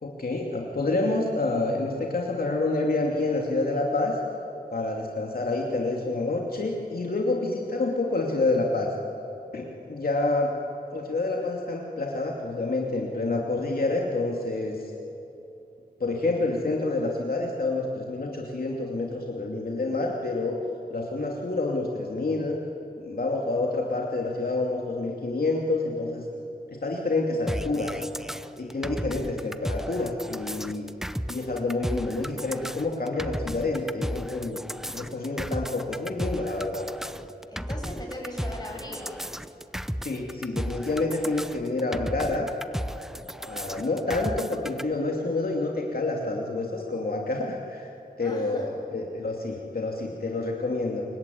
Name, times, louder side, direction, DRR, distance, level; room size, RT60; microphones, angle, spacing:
voice 1, 0.0-4.2 4.7-8.9 9.5-10.5 10.9-14.8 16.0-20.6 20.9-22.6 23.0-26.2 26.7-28.0 28.6-30.9 31.3-36.9 40.0-42.5 43.4-47.9 48.2-51.0, left 2 dB, 65° left, -1 dB, 2.7 m, -28 dB
sound 1, 27.5-44.8, equal, 5° right, 0.7 m, -34 dB
voice 2, 37.5-39.2 48.2-48.7, left 1 dB, 25° left, 0 dB, 7.5 m, -38 dB
26.5 x 23.0 x 9.4 m, 2.9 s
wide cardioid pair, 90°, 16 cm